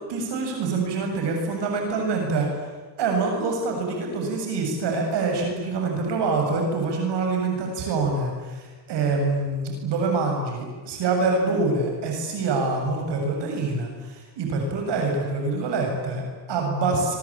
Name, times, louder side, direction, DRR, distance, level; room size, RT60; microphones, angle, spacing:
voice 1, 0.1-2.5 3.0-17.2, right 3 dB, 55° right, 2 dB, 7.5 m, -25 dB
26.5 x 24.0 x 8.7 m, 1.3 s
supercardioid pair, 110°, 50 cm